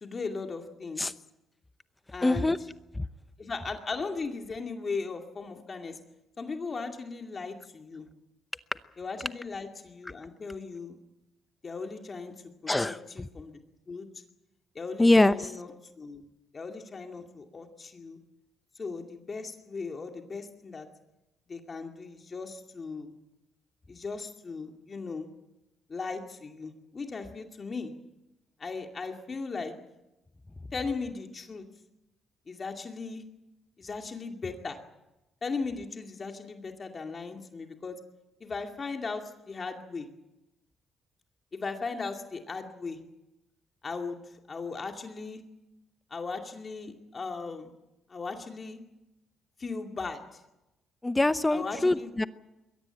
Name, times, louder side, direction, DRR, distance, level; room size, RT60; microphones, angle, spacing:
voice 1, 0.0-1.0 2.1-2.5 3.4-6.0 6.4-8.1 9.0-11.0 11.6-12.3 12.8-13.6 13.9-14.1 14.7-15.7 16.0-16.2 16.5-18.2 18.8-20.9 21.5-23.1 23.9-25.3 25.9-27.9 28.6-29.7 30.7-31.6 32.5-33.2 33.8-34.8 35.4-38.0 38.4-40.1 41.5-43.0 43.8-44.2 44.5-45.4 46.1-47.7 48.1-48.8 49.6-50.4 51.5-52.1, left 4 dB, 35° left, 4 dB, 2.4 m, -37 dB
voice 2, 2.2-2.6 2.9-3.1 12.7-13.0 15.0-15.5 51.0-52.2, left 2 dB, 15° left, 13 dB, 0.8 m, -23 dB
22.0 x 17.0 x 9.0 m, 0.95 s
cardioid pair, 90°, 0 cm